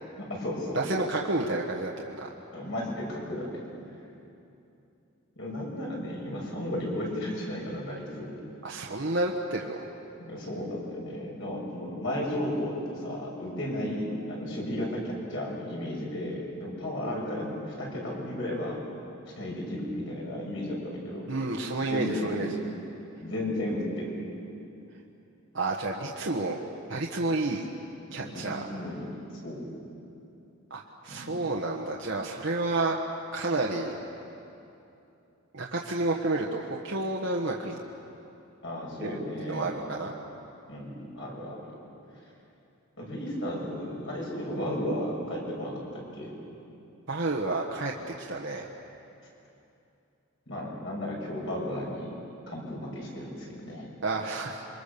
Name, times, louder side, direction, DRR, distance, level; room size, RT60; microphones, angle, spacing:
voice 1, 0.1-1.1 2.5-3.6 5.4-8.3 10.2-18.8 19.4-21.3 21.9-22.3 23.2-24.1 28.2-29.1 29.4-29.6 31.1-31.4 38.6-39.7 40.7-41.7 43.0-46.3 50.5-52.1 52.5-53.9, left 1 dB, 55° left, -3 dB, 6.6 m, -34 dB
voice 2, 0.7-2.3 8.6-9.8 21.2-22.5 25.5-26.6 26.9-27.7 28.1-28.7 30.7-33.0 33.3-34.0 35.5-37.8 39.0-39.2 39.5-40.1 47.1-48.7 54.0-54.6, right 2 dB, 55° right, -1 dB, 1.4 m, -30 dB
28.0 x 24.0 x 6.9 m, 2.8 s
head